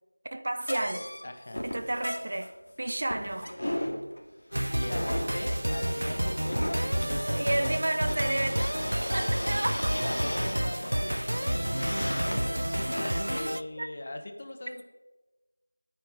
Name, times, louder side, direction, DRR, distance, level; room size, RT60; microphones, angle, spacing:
voice 1, 0.3-1.0 1.6-3.5 7.2-8.7 9.1-9.9 13.0-13.2 13.8-13.9, right 1 dB, 30° right, 0.6 m, -31 dB
sound 1, 0.6-13.5, left 1 dB, 65° left, 2.6 m, -37 dB
voice 2, 1.2-1.7 4.7-7.7 9.9-14.8, left 1 dB, 25° left, 1.0 m, -40 dB
sound 2, 4.5-13.6, right 1 dB, 80° right, 0.7 m, -30 dB
20.0 x 9.2 x 4.6 m
figure-of-eight pair, 175°, 0 cm